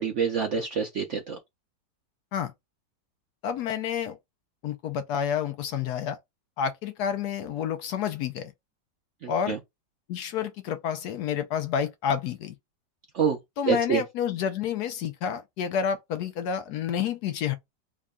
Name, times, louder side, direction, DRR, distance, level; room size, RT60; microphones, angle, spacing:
voice 1, 0.0-1.4 9.2-9.6 13.1-13.4 13.7-14.0, right 6 dB, 70° right, 0.7 m, -26 dB
voice 2, 3.4-4.2 4.6-6.2 6.6-8.5 9.3-9.6 10.1-12.5 13.6-17.5, left 8 dB, 70° left, 1.0 m, -29 dB
3.6 x 2.2 x 3.6 m
omnidirectional pair, 1.9 m